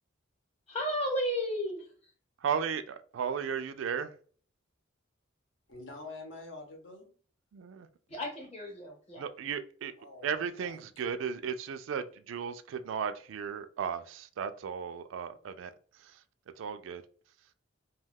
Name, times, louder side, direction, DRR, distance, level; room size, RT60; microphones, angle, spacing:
voice 1, 0.7-1.9 8.1-9.2, equal, 30° left, 0.9 m, -33 dB
voice 2, 2.4-4.1 7.5-7.9 9.2-9.9 10.2-15.7 16.6-17.0, right 7 dB, 70° right, 0.3 m, -35 dB
voice 3, 5.7-7.1 10.0-10.3 10.6-11.2, left 2 dB, 70° left, 0.9 m, -47 dB
2.3 x 2.2 x 3.3 m
head